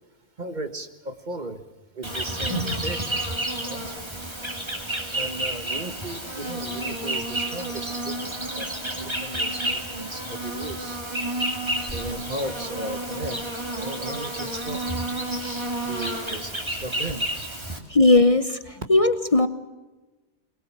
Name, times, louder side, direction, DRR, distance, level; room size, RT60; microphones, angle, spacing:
voice 1, 0.4-1.6 2.0-3.2 3.6-4.0 5.1-8.7 8.9-11.0 11.8-13.4 13.8-15.1 15.5-17.3, right 1 dB, 45° right, 7 dB, 1.8 m, -36 dB
Insect, 2.0-17.8, right 1 dB, 25° right, 2.9 m, -30 dB
voice 2, 17.9-18.6 18.9-19.5, left 2 dB, 35° left, 10 dB, 1.1 m, -17 dB
24.0 x 20.5 x 7.6 m, 1.2 s
omnidirectional pair, 1.1 m